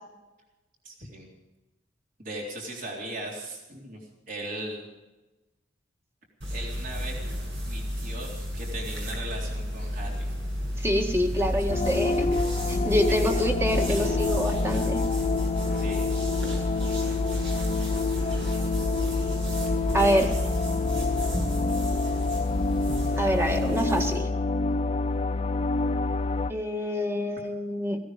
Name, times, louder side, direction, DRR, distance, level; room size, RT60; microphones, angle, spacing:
voice 1, 0.8-1.3 2.2-4.9 6.5-7.2 7.7-10.3 11.7-11.8 12.6-13.2 13.9-14.2 15.7-16.1 19.6-20.3, right 1 dB, 45° right, -1 dB, 3.7 m, -39 dB
sound 1, 6.4-24.2, equal, 65° right, 6.8 m, -33 dB
voice 2, 10.8-12.3 12.7-15.0 19.9-20.3 23.2-24.3 26.5-28.0, equal, 15° right, 3 dB, 1.8 m, -26 dB
sound 2, 11.7-26.5, left 3 dB, 30° left, 0.5 m, -27 dB
17.0 x 16.0 x 5.2 m, 1.1 s
head